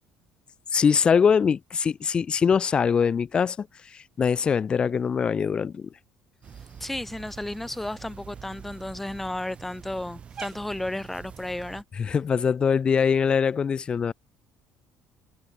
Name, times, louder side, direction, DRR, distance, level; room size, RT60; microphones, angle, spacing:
voice 1, 0.7-5.9 12.0-14.1, left 6 dB, 30° left, 0.4 m, -23 dB
Cat, 6.4-11.8, right 7 dB, 35° right, 7.2 m, -44 dB
voice 2, 6.8-11.8, left 1 dB, 5° left, 0.9 m, -33 dB
cardioid pair, 130°, 3 cm